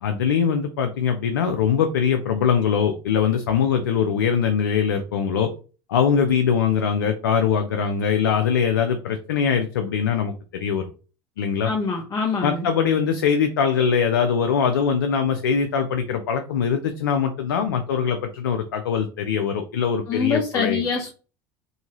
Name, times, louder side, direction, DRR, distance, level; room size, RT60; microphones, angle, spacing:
voice 1, 0.0-5.5 5.9-10.8 11.4-11.7 12.4-20.8, left 7 dB, 90° left, 6 dB, 0.4 m, -22 dB
voice 2, 11.6-12.7 20.1-21.1, left 5 dB, 30° left, 0 dB, 0.7 m, -24 dB
2.7 x 2.6 x 2.9 m, 0.35 s
hypercardioid pair, 80°, 11 cm